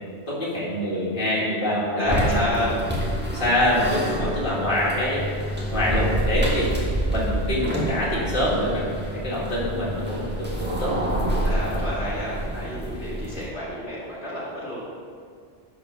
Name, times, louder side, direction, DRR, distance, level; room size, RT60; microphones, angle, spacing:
voice 1, 0.3-2.7 3.3-5.2 5.7-6.7 7.1-8.8 9.1-11.1, left 1 dB, 45° left, -7 dB, 2.3 m, -25 dB
voice 2, 2.0-2.8 4.8-5.0 11.4-14.8, left 1 dB, 70° left, -8 dB, 2.3 m, -30 dB
sound 1, 2.0-13.5, right 1 dB, 10° right, 1.6 m, -28 dB
11.0 x 4.8 x 5.9 m, 2.1 s
omnidirectional pair, 1.2 m